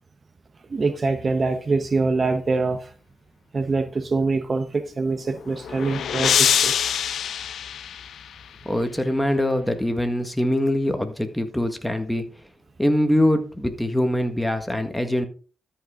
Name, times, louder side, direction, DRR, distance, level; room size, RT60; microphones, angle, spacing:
voice 1, 0.7-2.9 3.5-6.7, right 3 dB, 40° right, 1.1 m, -24 dB
sound 1, 5.2-8.6, left 9 dB, 75° left, 0.4 m, -24 dB
voice 2, 8.6-12.2 12.8-15.3, left 1 dB, 5° left, 1.7 m, -23 dB
13.0 x 5.6 x 3.8 m
cardioid pair, 70°, 0 cm